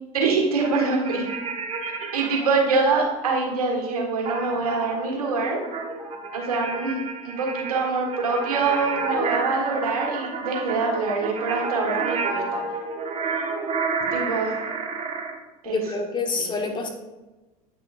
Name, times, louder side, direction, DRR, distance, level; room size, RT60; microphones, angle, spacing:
voice 1, 0.1-1.3 2.1-5.6 6.3-12.6 14.1-14.5 15.6-15.8 16.4-16.5, right 4 dB, 80° right, 0 dB, 1.6 m, -25 dB
sound 1, 0.6-2.6 4.3-15.3, right 4 dB, 35° right, 1.3 m, -30 dB
voice 2, 15.6-16.9, left 3 dB, 25° left, 3 dB, 1.2 m, -27 dB
9.0 x 5.9 x 2.5 m, 1.1 s
hypercardioid pair, 80°, 18 cm